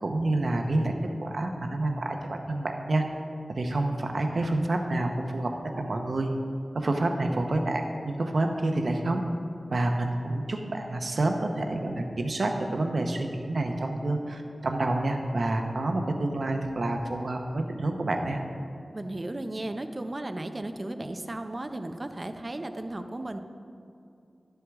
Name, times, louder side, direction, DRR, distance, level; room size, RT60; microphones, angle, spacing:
voice 1, 0.0-0.9 1.2-3.0 3.5-6.3 6.7-9.2 9.7-18.4, right 2 dB, 65° right, 4 dB, 0.8 m, -28 dB
voice 2, 18.9-23.4, right 1 dB, 35° right, 8 dB, 0.5 m, -35 dB
11.5 x 7.9 x 3.5 m, 2.6 s
wide cardioid pair, 90°, 0 cm